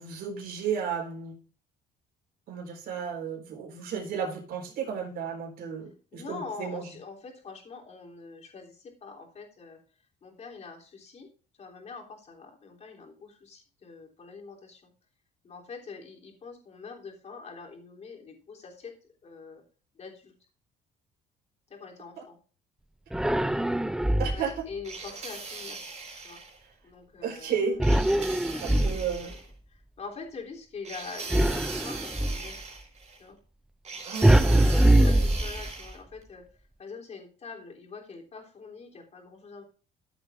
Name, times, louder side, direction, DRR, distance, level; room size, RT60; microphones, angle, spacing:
voice 1, 0.0-1.4 2.5-6.8 24.2-24.5 27.2-27.8 28.6-29.3 34.0-34.6 35.0-35.1, right 6 dB, 65° right, 0 dB, 4.2 m, -33 dB
voice 2, 6.1-9.8 10.2-11.3 11.6-14.9 15.4-18.9 19.2-19.6 19.9-20.3 21.7-22.4 24.3-25.8 26.1-26.4 26.8-27.8 28.4-29.4 29.7-32.6 33.2-33.4 34.6-39.6, left 4 dB, 40° left, 0 dB, 3.3 m, -44 dB
sound 1, 23.1-24.6 27.8-29.4 31.3-32.5 34.2-35.9, right 1 dB, 5° right, 0.3 m, -23 dB
sound 2, 24.8-26.6 27.8-29.5 30.8-33.2 33.8-36.0, right 4 dB, 40° right, 4.5 m, -40 dB
14.5 x 7.8 x 2.6 m, 0.38 s
cardioid pair, 110°, 17 cm